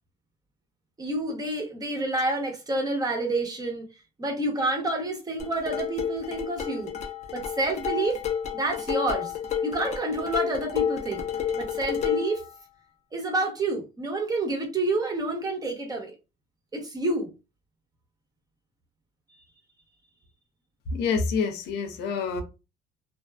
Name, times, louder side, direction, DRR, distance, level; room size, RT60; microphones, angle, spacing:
voice 1, 1.0-3.8 4.2-6.9 7.3-8.2 8.5-9.3 9.6-11.2 11.6-12.4 13.1-16.1 16.7-17.3, right 2 dB, 20° right, 0.9 m, -28 dB
sound 1, 5.4-12.4, left 8 dB, 40° left, 0.6 m, -30 dB
voice 2, 20.9-22.4, left 5 dB, 85° left, 0.6 m, -27 dB
2.5 x 2.2 x 2.2 m
cardioid pair, 110°, 17 cm